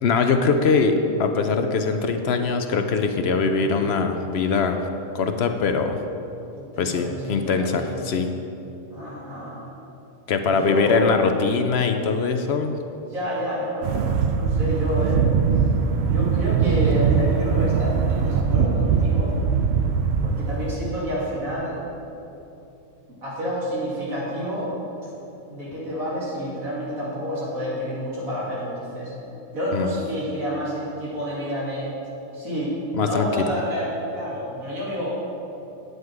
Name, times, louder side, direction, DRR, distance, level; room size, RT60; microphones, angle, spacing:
voice 1, 0.0-4.8 5.1-6.0 6.8-8.3 10.3-12.8 29.7-29.9 33.0-33.3, left 4 dB, 60° left, 6 dB, 0.8 m, -22 dB
voice 2, 3.4-3.8 6.5-8.0 8.9-9.7 10.4-11.3 13.1-15.2 16.0-19.4 20.2-21.8 23.2-24.7 25.5-29.1 29.5-31.9 32.3-35.1, equal, 85° right, -7 dB, 3.1 m, -29 dB
sound 1, 13.8-20.7, right 6 dB, 60° right, 0.7 m, -21 dB
9.5 x 8.1 x 4.7 m, 2.8 s
omnidirectional pair, 1.4 m